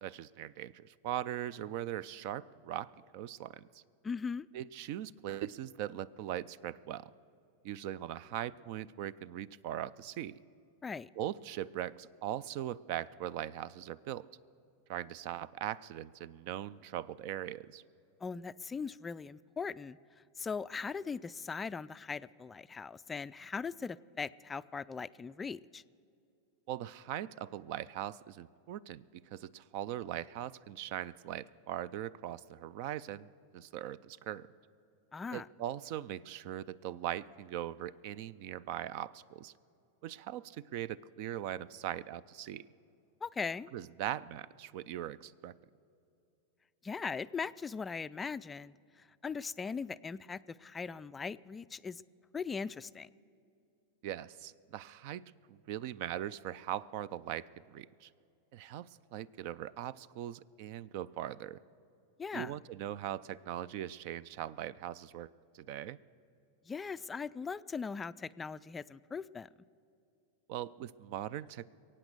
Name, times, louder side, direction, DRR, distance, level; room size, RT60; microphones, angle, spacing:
voice 1, 0.0-3.8 4.5-7.1 7.6-10.4 11.2-14.3 14.9-17.8 26.7-33.3 33.5-34.5 35.3-39.5 40.0-42.7 43.7-45.5 54.0-55.2 55.5-58.1 58.5-61.6 62.3-65.3 65.5-66.0 70.5-71.7, right 12 dB, 55° right, 21 dB, 0.4 m, -40 dB
voice 2, 4.0-4.5 10.8-11.1 18.2-20.0 20.4-25.8 35.1-35.5 43.2-43.7 46.8-52.0 52.3-53.1 62.2-62.6 66.7-69.5, left 5 dB, 20° left, 15 dB, 0.3 m, -40 dB
22.5 x 8.7 x 6.7 m, 2.6 s
hypercardioid pair, 100°, 0 cm